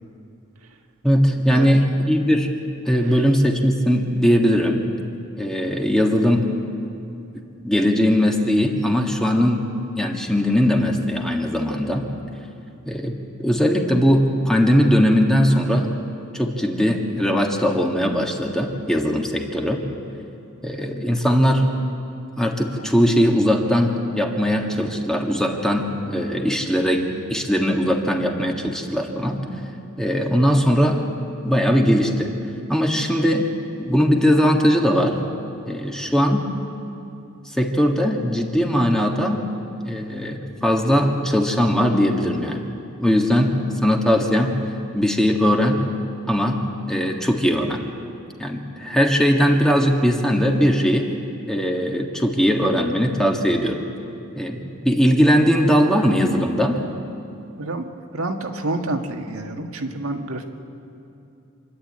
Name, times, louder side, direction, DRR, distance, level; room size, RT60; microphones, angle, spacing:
voice 1, 1.0-2.5 2.9-4.8 5.4-6.5 7.6-9.6 10.0-12.1 12.8-15.9 16.3-19.8 20.6-21.7 22.4-29.4 30.0-31.0 31.4-32.3 32.7-33.5 33.8-35.2 35.6-36.5 37.4-39.4 39.8-42.6 43.0-44.5 44.9-45.8 46.3-47.8 48.4-51.1 51.5-53.8 54.3-56.8, equal, 5° left, 1 dB, 1.7 m, -20 dB
voice 2, 57.6-60.4, right 2 dB, 85° right, 4 dB, 1.8 m, -28 dB
27.0 x 11.5 x 8.8 m, 2.7 s
head